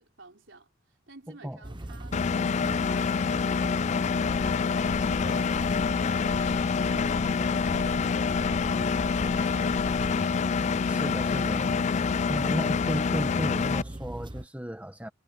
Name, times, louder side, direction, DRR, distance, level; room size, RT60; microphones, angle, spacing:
voice 1, 0.0-2.1 2.4-10.4 10.8-11.7 12.5-13.8, right 3 dB, 70° right, 4.6 m, -53 dB
sound 1, 1.6-14.5, right 1 dB, 25° right, 1.1 m, -39 dB
Engine, 2.1-13.8, left 5 dB, 35° left, 0.3 m, -26 dB
sound 2, 4.3-10.3, left 2 dB, 90° left, 1.3 m, -40 dB
voice 2, 10.9-11.9 12.3-15.1, equal, 10° right, 1.4 m, -34 dB
head